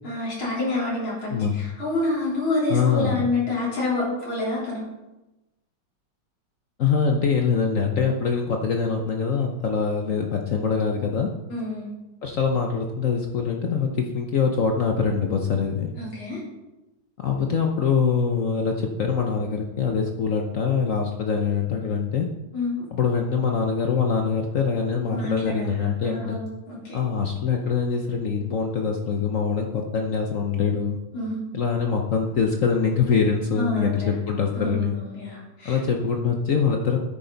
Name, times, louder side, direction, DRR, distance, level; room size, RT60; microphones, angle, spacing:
voice 1, 0.0-4.8 11.5-11.9 16.0-16.4 22.5-22.9 25.1-27.0 31.1-31.4 33.6-34.1 34.5-35.8, left 2 dB, 75° left, -6 dB, 4.6 m, -28 dB
voice 2, 2.7-3.2 6.8-11.3 12.2-15.9 17.2-22.3 22.9-26.4 26.9-31.0 31.5-35.0 35.6-37.0, left 6 dB, 60° left, 2 dB, 0.9 m, -24 dB
10.0 x 9.1 x 4.0 m, 1.0 s
omnidirectional pair, 2.3 m